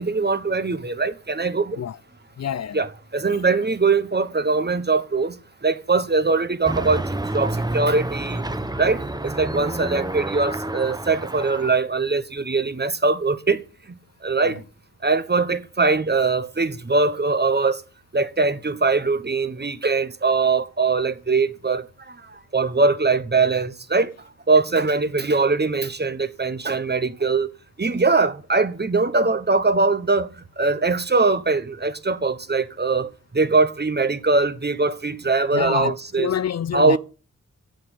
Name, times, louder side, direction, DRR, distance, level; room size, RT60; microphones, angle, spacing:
voice 1, 0.0-1.8 2.7-2.9 3.1-5.3 5.6-7.1 7.3-8.4 8.8-13.6 14.2-14.6 15.0-17.8 18.1-22.2 22.5-24.1 24.5-27.5 27.8-36.3 36.7-37.0, right 3 dB, 35° right, 1.1 m, -21 dB
voice 2, 2.4-2.8 14.5-14.6 35.5-37.0, left 8 dB, 55° left, 0.4 m, -27 dB
sound 1, 6.6-11.8, right 1 dB, 15° right, 0.8 m, -29 dB
8.8 x 7.6 x 7.2 m
cardioid pair, 50°, 31 cm